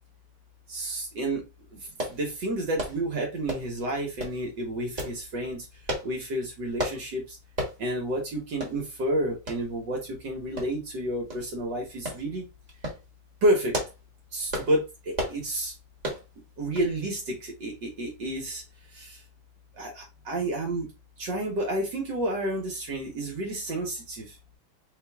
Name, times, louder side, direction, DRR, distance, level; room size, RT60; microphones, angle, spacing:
voice 1, 0.7-5.7 6.0-7.4 7.8-12.5 13.4-13.8 14.3-15.7 16.6-18.6 18.9-19.2 19.7-20.9 21.2-24.4, right 1 dB, 60° right, 1.8 m, -30 dB
sound 1, 2.0-2.2 2.8-3.0 3.5-3.7 4.2-4.4 5.0-5.2 5.9-6.1 6.8-7.0 7.6-7.8 8.2-8.3 8.6-8.8 9.5-9.6 10.6-10.9 11.3-11.4 12.1-12.2 12.7-13.0 13.5-14.0 14.5-14.7 15.1-15.4 16.0-16.2 16.8-16.9 17.2-17.3, equal, 25° right, 1.2 m, -32 dB
4.4 x 2.6 x 3.5 m
omnidirectional pair, 2.2 m